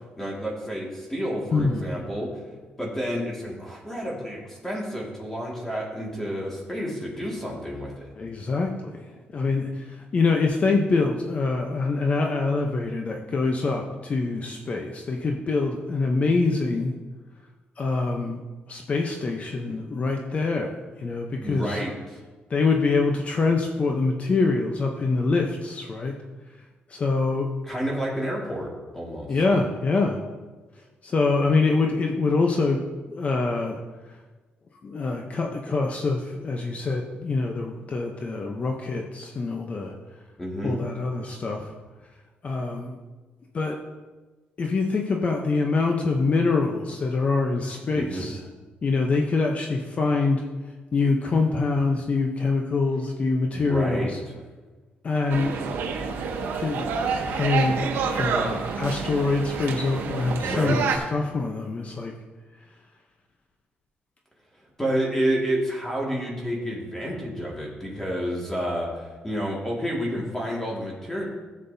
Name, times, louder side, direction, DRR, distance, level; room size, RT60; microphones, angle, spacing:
voice 1, 0.2-2.4 2.8-8.1 21.4-22.2 27.7-29.3 40.4-40.8 47.9-48.3 53.5-54.1 60.4-60.8 64.8-71.2, equal, 10° left, -3 dB, 2.0 m, -30 dB
voice 2, 1.5-1.9 8.2-16.9 17.8-18.4 18.7-21.8 22.5-26.2 26.9-27.5 29.3-30.2 31.0-32.8 33.1-33.8 34.8-39.9 40.6-41.7 42.4-43.0 43.5-43.8 44.6-48.4 48.8-50.5 50.9-54.2 55.0-55.5 56.6-57.8 58.1-62.1, left 3 dB, 40° left, 2 dB, 0.8 m, -25 dB
sound 1, 55.3-61.0, right 5 dB, 90° right, 1.0 m, -28 dB
14.0 x 7.5 x 2.7 m, 1.3 s
cardioid pair, 120°, 4 cm